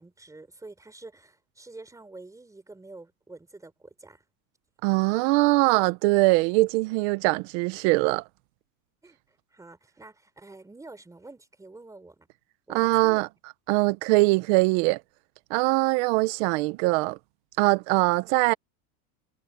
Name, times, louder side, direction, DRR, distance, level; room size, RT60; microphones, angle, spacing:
voice 1, 0.0-4.2 9.0-12.3 12.7-13.2, right 2 dB, 5° right, 4.5 m, -47 dB
voice 2, 4.8-8.2 12.7-13.3 13.7-15.0 15.5-17.2 17.6-18.5, right 22 dB, 50° right, 0.8 m, -22 dB
supercardioid pair, 160°, 46 cm